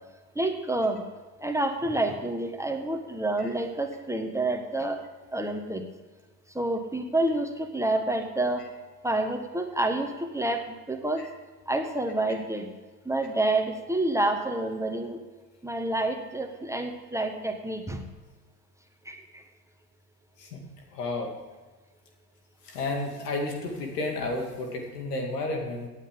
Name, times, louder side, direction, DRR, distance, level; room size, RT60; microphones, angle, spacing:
voice 1, 0.3-1.0 1.4-5.0 5.3-5.9 6.5-8.6 9.0-11.2 11.7-12.7 13.0-15.2 15.6-18.0 19.1-19.2, right 2 dB, 5° right, 4 dB, 1.4 m, -28 dB
voice 2, 20.9-21.3 22.6-25.9, left 2 dB, 80° left, 2 dB, 2.4 m, -32 dB
17.0 x 9.2 x 3.7 m, 1.3 s
hypercardioid pair, 70°, 47 cm